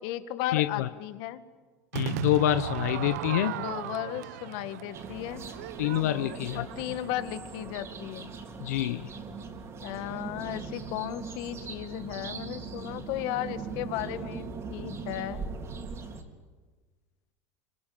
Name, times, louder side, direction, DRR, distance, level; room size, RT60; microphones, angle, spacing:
voice 1, 0.0-1.4 3.5-5.5 6.5-8.3 9.8-15.4, left 13 dB, 65° left, 11 dB, 1.9 m, -35 dB
voice 2, 0.5-0.9 1.9-3.6 5.8-6.6 8.6-9.1, left 14 dB, 85° left, 11 dB, 1.0 m, -26 dB
Crowd / Fireworks, 1.9-7.2, right 14 dB, 85° right, 0.8 m, -37 dB
sound 1, 4.9-16.2, right 4 dB, 35° right, 4.2 m, -40 dB
25.5 x 24.5 x 9.1 m, 1.3 s
supercardioid pair, 110°, 8 cm